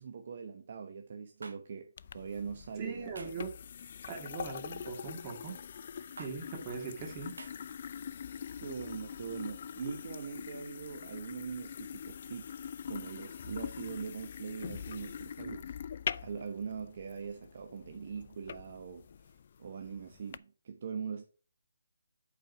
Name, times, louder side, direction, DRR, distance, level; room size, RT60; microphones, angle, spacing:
voice 1, 0.0-3.1 8.6-12.5 12.9-15.7 16.2-19.3 19.6-21.2, right 6 dB, 50° right, 1.0 m, -42 dB
sound 1, 1.4-1.6 3.1-3.4 4.7-5.0 6.2-6.3 7.4-7.5, right 3 dB, 85° right, 1.8 m, -47 dB
sound 2, 2.0-20.4, left 7 dB, 45° left, 0.3 m, -44 dB
voice 2, 2.8-3.5 4.0-5.6 6.2-7.3, right 5 dB, 25° right, 2.5 m, -40 dB
8.3 x 4.6 x 4.7 m
figure-of-eight pair, 155°, 0 cm